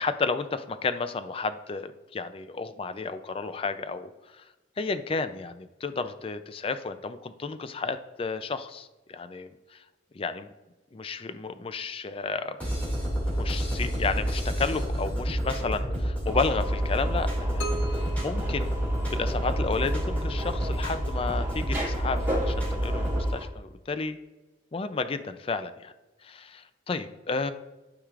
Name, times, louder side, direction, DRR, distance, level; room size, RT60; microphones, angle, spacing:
voice 1, 0.0-4.4 4.8-9.8 10.1-10.5 10.9-12.6 13.3-18.7 19.1-24.2 24.7-25.9 26.2-27.5, left 4 dB, 30° left, 11 dB, 0.4 m, -32 dB
sound 1, 12.6-23.3, equal, 10° left, 2.2 m, -28 dB
sound 2, 16.3-23.4, equal, 10° right, 2.5 m, -38 dB
sound 3, 17.6-19.5, right 2 dB, 75° left, 0.8 m, -39 dB
12.0 x 4.8 x 2.4 m, 1.1 s
head